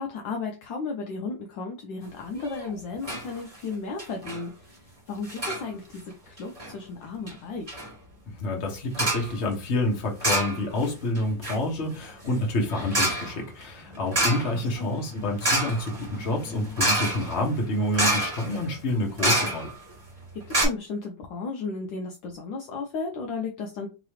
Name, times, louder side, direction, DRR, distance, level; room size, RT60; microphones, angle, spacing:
voice 1, 0.0-7.8 14.8-15.0 20.5-23.9, left 4 dB, 70° left, 1.2 m, -34 dB
sound 1, 2.4-2.7 3.0-3.3 3.5-3.6 4.0-4.4 5.2-5.6 6.4-6.7 7.3-7.4 7.7-7.9 8.9-9.3 10.2-10.9 11.1-19.9 20.2-20.3 20.5-20.6, right 1 dB, 20° right, 1.3 m, -28 dB
voice 2, 8.3-19.7, left 1 dB, 40° left, 1.2 m, -28 dB
3.7 x 2.9 x 3.1 m
omnidirectional pair, 2.4 m